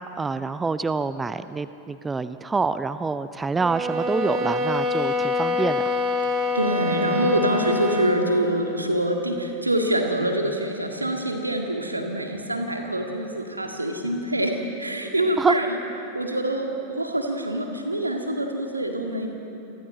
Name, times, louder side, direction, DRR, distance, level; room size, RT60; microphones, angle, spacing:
voice 1, 0.2-5.9 15.4-15.6, right 4 dB, 15° right, 13 dB, 0.5 m, -26 dB
sound 1, 3.6-8.3, left 3 dB, 35° right, 1.8 m, -25 dB
voice 2, 6.3-15.8 16.1-19.3, right 1 dB, 85° right, 3 dB, 2.0 m, -25 dB
28.0 x 23.0 x 4.1 m, 2.9 s
figure-of-eight pair, 90°, 0 cm